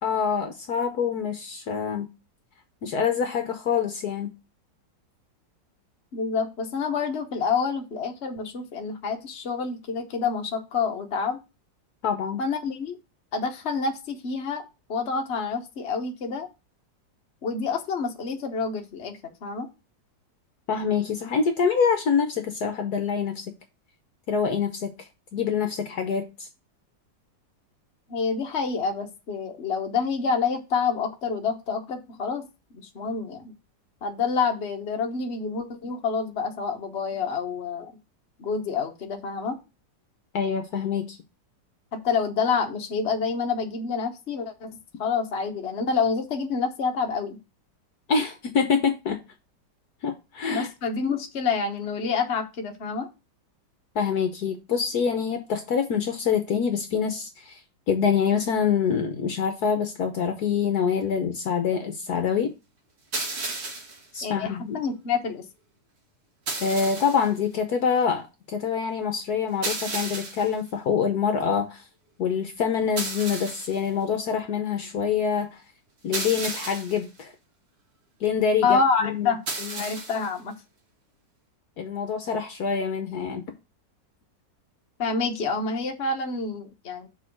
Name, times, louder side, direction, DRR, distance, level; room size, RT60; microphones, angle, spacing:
voice 1, 0.0-2.1 2.8-4.3 12.0-12.4 20.7-23.5 24.3-24.9 25.3-26.5 40.3-41.2 48.1-49.2 50.0-50.7 53.9-57.6 57.9-62.5 64.1-64.8 66.6-71.8 72.2-75.6 76.0-77.3 78.2-79.3 79.6-79.8 81.8-83.5, left 6 dB, 60° left, 1.3 m, -25 dB
voice 2, 6.1-11.4 12.4-13.0 13.3-14.6 14.9-16.5 17.4-19.7 28.1-32.5 32.7-33.5 34.0-37.9 38.4-39.6 41.9-44.7 45.0-47.4 50.5-53.1 64.2-65.4 78.6-79.4 79.8-80.5 85.0-87.1, left 5 dB, 40° left, 1.3 m, -27 dB
sound 1, 63.1-64.1 66.5-67.3 69.6-70.6 73.0-73.8 76.1-77.1 79.5-80.3, right 3 dB, 40° right, 1.4 m, -32 dB
6.6 x 3.9 x 6.2 m
omnidirectional pair, 2.0 m